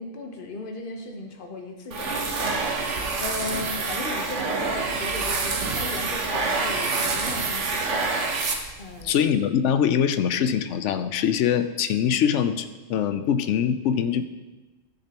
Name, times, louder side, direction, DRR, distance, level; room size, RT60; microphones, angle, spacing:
voice 1, 0.0-2.3 3.2-7.9 8.8-9.3, left 3 dB, 45° left, 3 dB, 1.1 m, -36 dB
sound 1, 1.9-9.0, right 3 dB, 70° right, 1.3 m, -27 dB
voice 2, 9.0-14.3, left 8 dB, 70° left, 11 dB, 0.9 m, -23 dB
13.0 x 6.8 x 2.9 m, 1.2 s
omnidirectional pair, 1.3 m